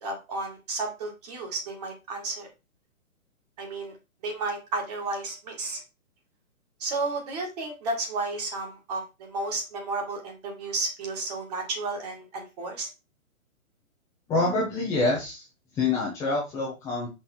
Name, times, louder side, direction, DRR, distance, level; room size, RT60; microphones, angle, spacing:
voice 1, 0.0-2.5 3.6-3.9 4.2-5.8 6.8-12.9, right 3 dB, 30° right, 2 dB, 2.3 m, -32 dB
voice 2, 14.3-15.4 15.7-17.1, left 3 dB, 5° left, -6 dB, 1.0 m, -26 dB
5.9 x 4.8 x 4.4 m, 0.26 s
hypercardioid pair, 165°, 41 cm